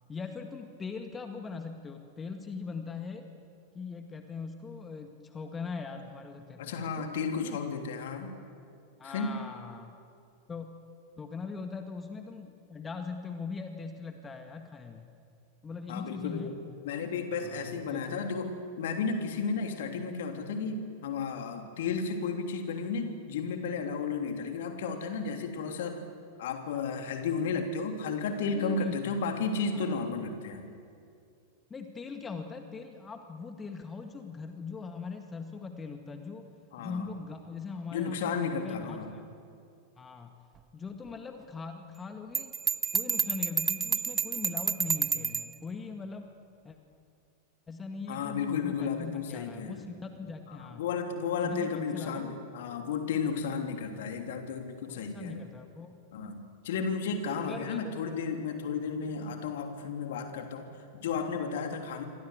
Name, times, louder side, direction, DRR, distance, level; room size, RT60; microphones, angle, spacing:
voice 1, 0.1-3.3 3.7-7.1 7.4-7.6 9.0-10.0 10.5-10.8 11.2-15.1 15.6-16.6 17.4-18.3 28.5-29.0 29.7-29.8 31.7-36.5 36.8-39.2 40.0-40.4 40.7-42.5 42.9-46.3 46.6-46.8 47.7-50.8 51.4-52.3 54.9-56.0 57.4-57.9, left 5 dB, 15° left, 6 dB, 1.8 m, -41 dB
voice 2, 6.6-8.3 9.0-9.4 15.9-16.6 16.8-26.0 26.4-30.7 36.7-37.1 37.9-39.1 48.1-49.9 50.5-55.4 56.1-62.0, left 5 dB, 55° left, 5 dB, 3.2 m, -33 dB
Bell, 42.3-45.5, right 6 dB, 20° right, 0.6 m, -30 dB
28.5 x 24.5 x 8.2 m, 2.4 s
figure-of-eight pair, 90°, 0 cm